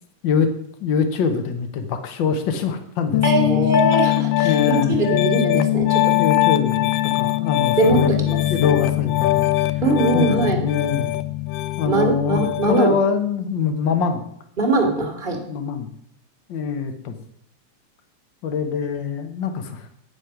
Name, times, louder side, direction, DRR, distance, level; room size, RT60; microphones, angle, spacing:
voice 1, 0.8-3.2 3.5-3.7 4.4-5.0 6.2-8.2 8.5-9.5 10.1-11.1 11.8-14.3 15.5-15.9 16.5-17.2 18.4-19.9, left 6 dB, 70° left, 7 dB, 1.1 m, -24 dB
Piano, 3.1-12.8, left 16 dB, 90° left, 1.3 m, -21 dB
voice 2, 3.2-6.2 7.8-8.4 9.8-10.7 11.8-12.9 14.6-15.4, right 2 dB, 20° right, 2 dB, 1.4 m, -21 dB
9.4 x 6.7 x 5.8 m, 0.70 s
omnidirectional pair, 3.4 m